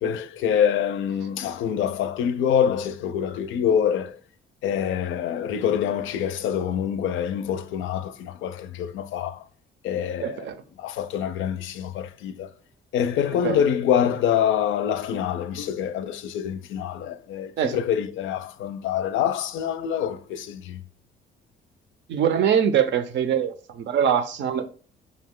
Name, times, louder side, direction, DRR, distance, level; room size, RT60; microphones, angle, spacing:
voice 1, 0.0-4.2 4.6-9.4 9.8-10.5 10.8-12.5 12.9-20.8, left 9 dB, 80° left, 0.4 m, -25 dB
voice 2, 10.2-10.6 13.4-13.6 17.6-17.8 22.1-24.7, right 8 dB, 70° right, 0.5 m, -23 dB
5.0 x 2.3 x 3.6 m
cardioid pair, 90°, 20 cm